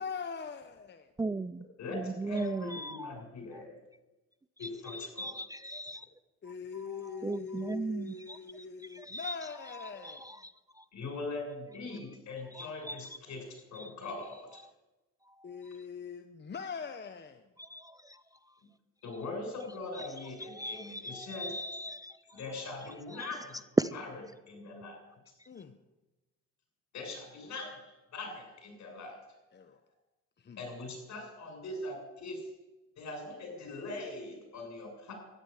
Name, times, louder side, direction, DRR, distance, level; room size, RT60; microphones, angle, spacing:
voice 1, 0.0-1.1 6.4-10.3 15.4-17.4 25.5-25.8 29.5-29.8 30.4-30.6, left 6 dB, 35° left, 1.1 m, -42 dB
voice 2, 1.2-1.7 1.9-3.2 3.5-3.6 4.6-6.1 6.5-6.6 6.8-10.9 11.9-12.0 12.5-13.1 13.7-13.9 14.2-14.7 17.6-18.6 19.9-22.4 23.1-23.3 23.8-23.9 25.4-25.5, right 2 dB, 10° right, 0.4 m, -38 dB
voice 3, 1.8-3.7 4.6-5.3 10.9-13.4 13.7-14.6 19.0-21.5 22.3-23.6 24.5-25.0 26.9-27.7 28.1-29.2 30.6-32.5 33.0-35.1, left 2 dB, 65° left, 6.8 m, -41 dB
13.5 x 10.5 x 9.7 m
cardioid pair, 90°, 30 cm